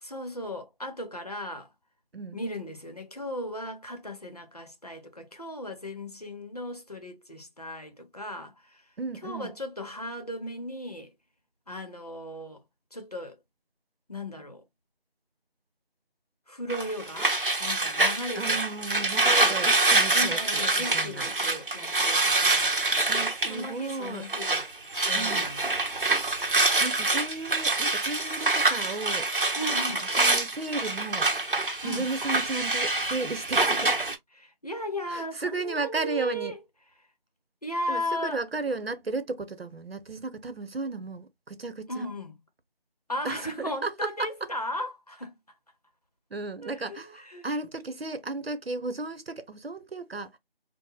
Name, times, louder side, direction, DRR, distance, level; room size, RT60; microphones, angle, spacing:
voice 1, 0.0-1.7 2.3-8.8 9.2-11.1 11.7-12.6 12.9-13.4 14.1-14.6 16.5-17.3 17.6-18.6 19.2-19.6 20.1-22.7 23.5-24.7 25.1-25.7 29.6-30.1 31.8-32.1 34.4-36.6 37.6-38.4 41.9-42.3 43.1-45.4 46.6-47.5, equal, 40° left, 0.8 m, -36 dB
voice 2, 9.0-9.5 18.3-20.7 20.9-21.3 23.1-24.3 25.1-25.5 26.4-26.5 26.8-29.6 30.0-31.3 31.8-34.0 35.1-36.5 37.9-42.0 43.2-44.5 46.3-50.4, right 3 dB, 90° right, 0.8 m, -34 dB
sound 1, 16.7-24.7 24.9-34.1, right 2 dB, 65° right, 0.9 m, -26 dB
4.7 x 2.1 x 2.3 m
figure-of-eight pair, 175°, 29 cm